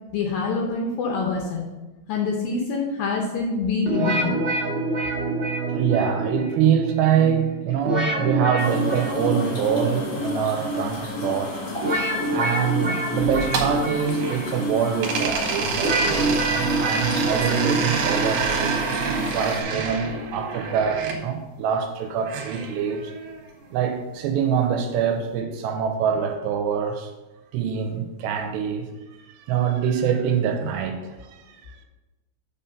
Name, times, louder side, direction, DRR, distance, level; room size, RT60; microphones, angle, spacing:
voice 1, 0.1-1.7 2.1-4.4, left 4 dB, 75° left, 0 dB, 2.2 m, -25 dB
sound 1, 3.9-19.8, right 2 dB, 50° right, 1.3 m, -27 dB
voice 2, 5.7-11.6 12.3-18.8 19.3-23.1 23.7-27.1 27.5-28.9 29.3-31.6, right 8 dB, 85° right, 5 dB, 2.8 m, -25 dB
sound 2, 8.6-19.6, left 3 dB, 45° left, 2.3 m, -35 dB
sound 3, 13.2-14.6 15.0-21.2 22.3-23.4, right 5 dB, 70° right, 2.3 m, -28 dB
7.2 x 5.7 x 5.4 m, 1.1 s
omnidirectional pair, 5.2 m